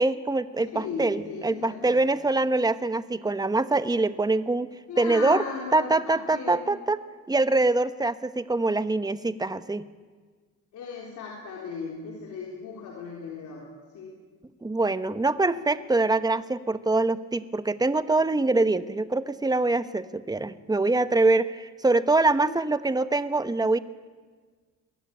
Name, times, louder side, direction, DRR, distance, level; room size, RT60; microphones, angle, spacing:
voice 1, 0.0-4.7 5.0-5.4 5.7-7.0 7.3-9.8 14.6-23.8, right 2 dB, 15° right, 13 dB, 1.0 m, -24 dB
voice 2, 0.6-2.0 4.9-6.7 10.7-13.7 13.9-14.2 22.4-22.6, left 4 dB, 75° left, -2 dB, 4.0 m, -37 dB
22.0 x 14.0 x 9.9 m, 1.5 s
cardioid pair, 90°, 30 cm